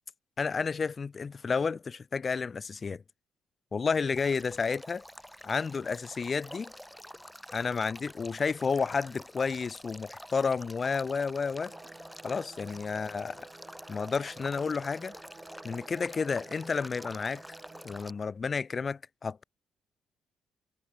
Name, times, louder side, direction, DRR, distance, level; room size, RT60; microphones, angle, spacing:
voice 1, 0.4-3.0 3.7-5.0 5.4-6.7 7.5-11.7 12.2-13.4 13.9-15.2 15.6-17.4 17.8-19.4, left 5 dB, 35° left, 0.5 m, -31 dB
Male speech man speaking / Stream / Trickle dribble, 4.2-18.1, equal, 5° left, 6.1 m, -48 dB
sound 1, 11.7-18.0, right 3 dB, 25° right, 2.9 m, -52 dB
cardioid pair, 90°, 0 cm